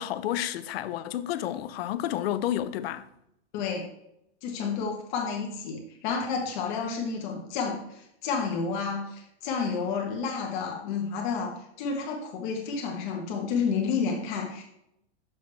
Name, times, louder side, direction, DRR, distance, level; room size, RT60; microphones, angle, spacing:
voice 1, 0.0-3.0, left 12 dB, 60° left, 0.6 m, -30 dB
voice 2, 3.5-3.9 4.4-14.6, left 5 dB, 45° left, 1.4 m, -30 dB
6.9 x 6.3 x 3.5 m
supercardioid pair, 155°, 34 cm